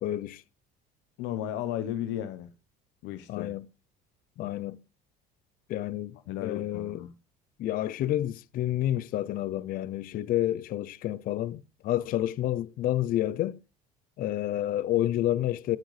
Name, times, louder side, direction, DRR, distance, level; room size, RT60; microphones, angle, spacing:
voice 1, 0.0-0.4 3.3-3.6 4.4-4.8 5.7-7.0 7.6-13.6 14.2-15.8, left 13 dB, 50° left, 0.5 m, -29 dB
voice 2, 1.2-2.5 3.0-3.5 6.3-7.1, left 11 dB, 75° left, 0.9 m, -34 dB
16.5 x 6.4 x 3.2 m
cardioid pair, 125°, 19 cm